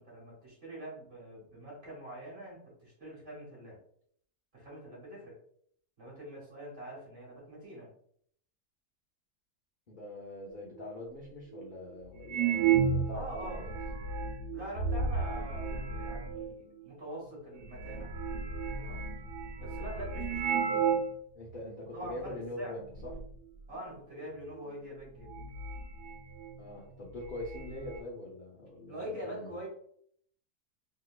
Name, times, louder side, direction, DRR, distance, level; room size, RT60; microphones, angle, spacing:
voice 1, 0.0-3.8 4.5-5.4 6.0-7.9 13.1-13.6 14.5-18.2 18.8-19.1 19.6-21.0 21.9-22.8 23.7-25.4 28.9-29.7, right 1 dB, 40° right, -4 dB, 1.5 m, -44 dB
voice 2, 9.9-14.0 21.3-23.2 26.6-29.6, left 1 dB, 70° left, -4 dB, 0.4 m, -43 dB
sound 1, 10.8-10.9 11.6-11.7 12.2-16.5 17.3-17.4 17.6-21.2 21.5-21.6 22.2-22.5 22.8-23.3 24.6-24.7 25.1-26.6 26.9-27.0 27.3-28.0, right 6 dB, 85° right, 1.2 m, -33 dB
3.2 x 2.8 x 2.3 m, 0.63 s
omnidirectional pair, 1.7 m